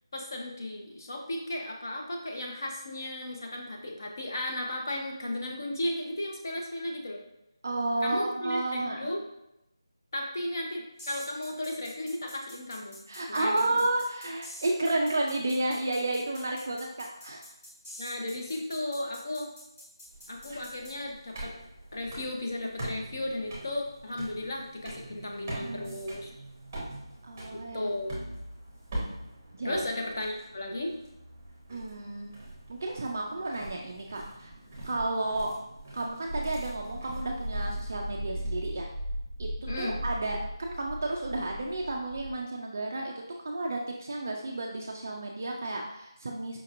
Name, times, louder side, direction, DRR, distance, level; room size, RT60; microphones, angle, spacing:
voice 1, 0.1-7.2 8.0-9.2 10.1-13.0 13.3-13.9 18.0-19.5 20.3-21.5 21.9-26.3 27.5-28.3 29.6-30.9 39.7-40.0, left 1 dB, 40° left, 1 dB, 0.7 m, -35 dB
voice 2, 7.6-9.0 13.1-17.4 25.6-25.9 27.2-27.9 29.6-29.8 31.7-32.3 32.7-34.5 34.8-35.5 35.9-38.9 39.4-39.5 39.8-43.1 43.4-46.6, right 2 dB, 30° right, 0 dB, 0.3 m, -32 dB
sound 1, 11.0-20.9, left 1 dB, 20° left, 1.1 m, -47 dB
sound 2, 20.1-38.5, right 1 dB, 10° right, 0.8 m, -43 dB
sound 3, 36.3-42.3, equal, 60° left, 1.1 m, -37 dB
5.0 x 2.9 x 2.5 m, 0.87 s
figure-of-eight pair, 175°, 3 cm